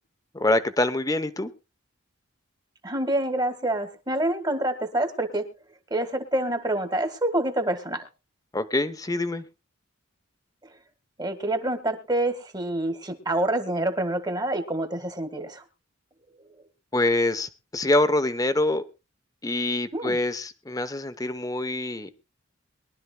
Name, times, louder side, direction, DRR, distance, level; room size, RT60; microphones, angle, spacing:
voice 1, 0.3-1.5 8.5-9.5 16.9-18.8 19.4-22.1, left 2 dB, 15° left, 11 dB, 0.8 m, -25 dB
voice 2, 2.8-5.4 5.9-8.1 11.2-15.6 19.9-20.2, right 1 dB, 20° right, 8 dB, 1.6 m, -27 dB
23.0 x 12.0 x 2.2 m, 0.28 s
head